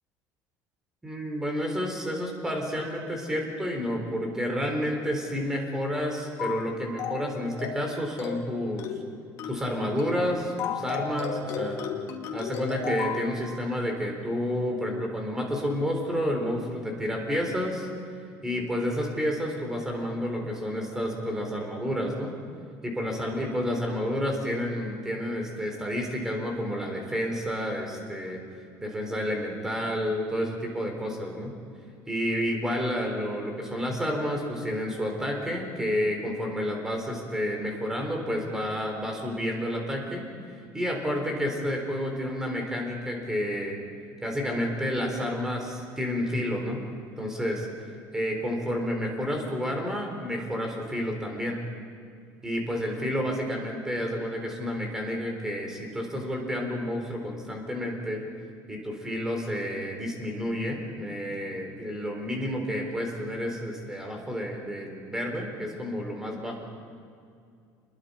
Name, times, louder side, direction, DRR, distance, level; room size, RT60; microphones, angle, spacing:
voice 1, 1.0-8.9 9.5-11.9 12.3-17.9 18.4-22.3 22.8-28.4 28.8-31.5 32.1-40.2 40.7-43.8 44.2-46.8 47.2-47.7 48.1-51.6 52.4-58.2 58.7-66.6, equal, 10° right, 1 dB, 4.0 m, -30 dB
sound 1, 6.4-6.7 7.0-7.3 7.6-7.9 8.2-8.5 8.8-9.1 9.4-9.7 10.0-10.2 10.6-13.2, left 7 dB, 50° left, 2.4 m, -33 dB
29.5 x 22.0 x 5.2 m, 2.3 s
cardioid pair, 165°, 7 cm